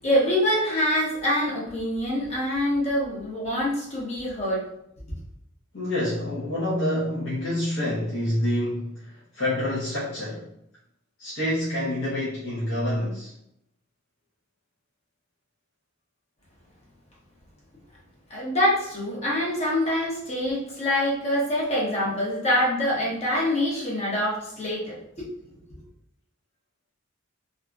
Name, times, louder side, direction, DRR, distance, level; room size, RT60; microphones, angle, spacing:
voice 1, 0.0-4.7 18.3-25.3, left 1 dB, 35° left, -5 dB, 0.8 m, -25 dB
voice 2, 5.7-10.4 11.2-13.3, left 1 dB, 65° left, -10 dB, 0.9 m, -27 dB
2.7 x 2.5 x 2.3 m, 0.79 s
head